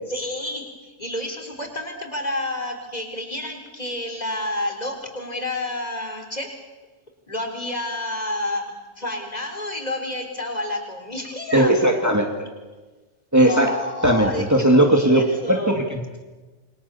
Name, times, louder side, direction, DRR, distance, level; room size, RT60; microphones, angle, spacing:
voice 1, 0.1-6.5 7.3-12.2 13.5-15.8, left 1 dB, 30° left, 4 dB, 4.5 m, -30 dB
voice 2, 11.5-12.5 13.3-13.7 14.0-15.2 15.5-16.2, right 1 dB, 15° right, 2 dB, 2.4 m, -18 dB
28.5 x 23.0 x 7.1 m, 1.2 s
omnidirectional pair, 1.3 m